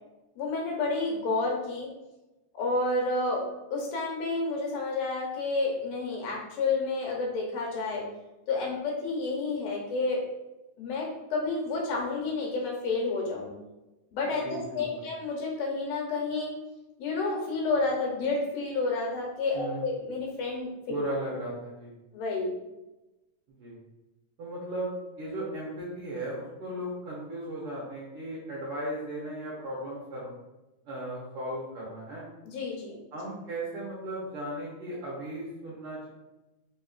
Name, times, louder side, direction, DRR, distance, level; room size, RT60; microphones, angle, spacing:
voice 1, 0.4-1.9 2.5-3.5 3.7-8.1 8.5-10.2 10.8-13.5 14.1-16.5 17.0-20.7 22.1-22.5 32.4-33.0, left 3 dB, 75° left, -1 dB, 1.9 m, -30 dB
voice 2, 14.4-15.0 19.5-19.9 20.9-21.9 23.5-23.8 24.4-24.9 25.2-30.3 30.8-32.3 33.1-36.1, right 1 dB, 70° right, -5 dB, 1.4 m, -36 dB
4.0 x 3.7 x 2.3 m, 1.0 s
omnidirectional pair, 3.3 m